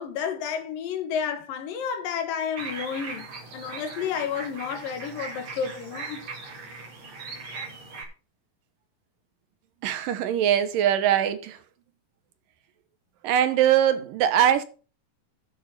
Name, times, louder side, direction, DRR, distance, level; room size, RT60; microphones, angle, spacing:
voice 1, 0.0-3.3 3.5-6.2, left 7 dB, 80° left, 3.2 m, -31 dB
sound 1, 2.6-8.0, right 4 dB, 55° right, 4.6 m, -39 dB
voice 2, 9.8-11.6 13.2-14.6, right 10 dB, 80° right, 2.6 m, -22 dB
9.3 x 6.4 x 7.0 m
omnidirectional pair, 4.0 m